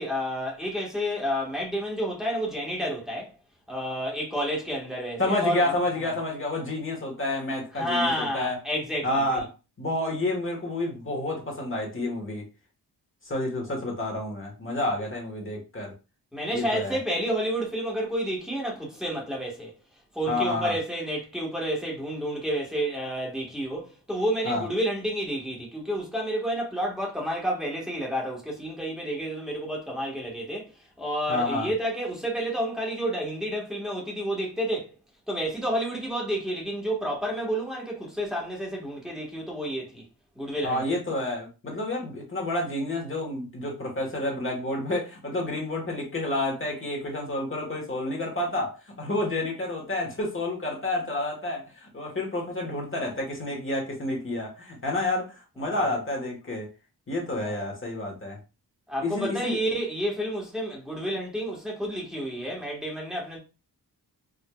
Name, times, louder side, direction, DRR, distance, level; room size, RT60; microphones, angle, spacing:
voice 1, 0.0-3.3 3.7-5.8 6.0-6.1 7.7-9.4 16.3-19.7 20.1-30.7 31.0-34.9 35.3-40.0 40.3-40.8 55.6-56.0 57.3-57.6 58.9-63.4, equal, ahead, 1.3 m, -30 dB
voice 2, 5.2-8.6 9.0-9.4 9.8-12.4 13.2-15.9 16.5-17.0 20.3-20.8 24.4-24.6 31.3-31.7 40.6-56.7 57.1-58.4 59.0-59.6, left 2 dB, 30° left, 1.2 m, -29 dB
4.8 x 2.6 x 2.2 m
wide cardioid pair, 115°, 39 cm